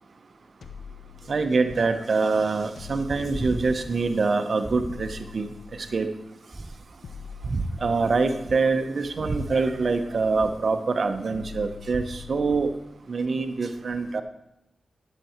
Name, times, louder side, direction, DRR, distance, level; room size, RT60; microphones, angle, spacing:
sound 1, 0.6-1.9 2.8-4.4 4.9-6.3 7.0-8.6 9.2-10.6 11.3-12.9, left 7 dB, 75° left, 0.9 m, -44 dB
voice 1, 1.3-5.5 5.9-6.1 7.5-12.7 13.1-14.2, right 4 dB, 60° right, 8 dB, 0.9 m, -25 dB
sound 2, 3.3-4.0 4.6-5.2 6.5-7.2 8.4-8.9 10.4-10.8 13.2-13.3, right 2 dB, 25° right, 0.6 m, -38 dB
11.5 x 6.9 x 4.5 m, 0.82 s
cardioid pair, 50°, 0 cm